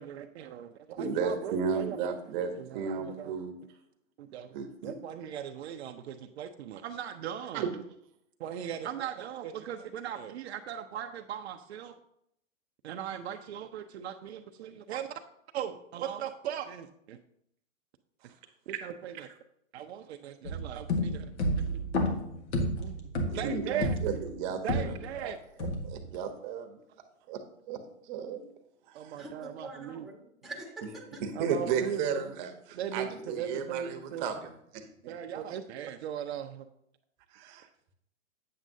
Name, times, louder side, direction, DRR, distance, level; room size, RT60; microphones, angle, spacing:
voice 1, 0.0-2.2 2.5-3.4 4.2-7.8 8.4-11.9 12.8-15.1 15.5-17.2 18.7-19.3 19.7-21.3 21.6-21.7 22.0-22.1 22.8-24.0 24.6-25.4 28.9-30.1 31.3-32.0 32.7-34.3 35.1-36.7, right 9 dB, 60° right, 6 dB, 0.6 m, -39 dB
voice 2, 1.0-3.6 4.5-4.9 7.5-7.7 23.2-25.3 25.6-26.8 27.3-27.4 27.7-27.8 28.1-28.4 28.9-29.2 31.2-35.1 37.3-37.7, right 6 dB, 40° right, 6 dB, 1.0 m, -34 dB
sound 1, 20.4-25.2 25.6-26.2, left 1 dB, 60° left, 1.6 m, -31 dB
voice 3, 29.2-31.2, right 2 dB, ahead, 0 dB, 1.2 m, -45 dB
8.7 x 7.4 x 2.7 m, 0.74 s
hypercardioid pair, 130°, 38 cm